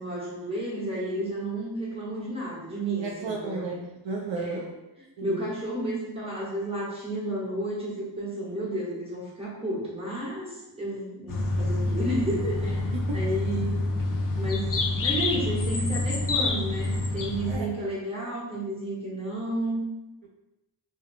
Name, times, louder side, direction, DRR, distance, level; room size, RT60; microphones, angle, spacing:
voice 1, 0.0-3.7 4.4-4.7 5.2-12.8 13.1-13.7 14.4-19.8, right 1 dB, 10° right, -6 dB, 1.2 m, -32 dB
voice 2, 3.0-4.7 5.2-5.4 13.1-13.2 16.4-16.6 17.5-17.9 20.2-20.3, right 3 dB, 65° right, -1 dB, 0.5 m, -34 dB
sound 1, 11.3-17.6, left 2 dB, 45° left, 0.5 m, -27 dB
2.7 x 2.1 x 2.6 m, 1.0 s
cardioid pair, 50°, 48 cm